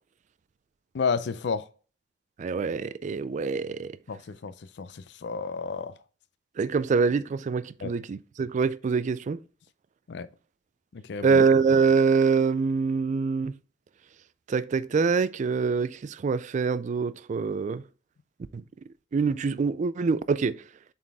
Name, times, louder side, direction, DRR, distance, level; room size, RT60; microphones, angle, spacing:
voice 1, 0.9-1.6 4.1-4.5 4.8-5.9 7.8-7.9 10.1-10.3 10.9-11.4, left 5 dB, 70° left, 0.5 m, -31 dB
voice 2, 2.4-3.9 6.6-9.4 11.2-13.6 14.5-17.8 18.5-18.6 19.1-20.6, right 5 dB, 40° right, 0.3 m, -25 dB
7.4 x 4.1 x 3.4 m
head